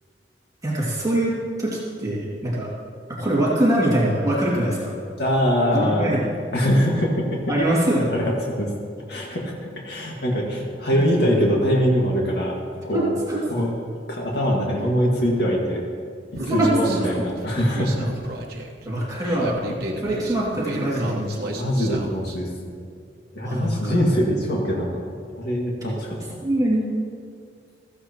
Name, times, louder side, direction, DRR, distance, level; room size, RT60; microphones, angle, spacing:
voice 1, 0.6-2.7 3.1-4.9 5.7-6.3 7.5-8.1 10.9-11.4 12.9-13.4 16.5-17.3 18.8-19.6 20.0-21.5 23.4-24.2 26.4-26.9, right 1 dB, 20° right, -6 dB, 2.3 m, -23 dB
voice 2, 5.2-6.2 6.5-7.4 8.1-8.7 9.1-12.5 12.8-13.2 13.5-13.7 14.1-15.8 16.4-18.1 19.2-19.4 21.5-22.8 23.3-26.4, equal, 60° left, -2 dB, 1.9 m, -23 dB
Human voice, 16.4-22.4, right 1 dB, 60° right, 1.2 m, -33 dB
15.5 x 14.5 x 3.0 m, 2.2 s
head